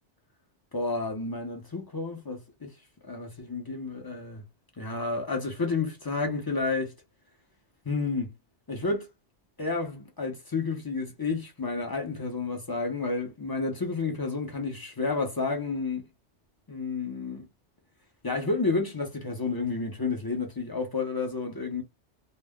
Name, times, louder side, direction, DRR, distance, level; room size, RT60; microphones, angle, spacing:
voice 1, 0.7-2.8 3.0-4.4 4.8-6.9 7.8-8.3 8.7-9.1 9.6-16.1 16.7-17.5 18.2-21.8, left 3 dB, 35° left, 0.3 m, -30 dB
2.1 x 2.0 x 3.4 m
omnidirectional pair, 1.2 m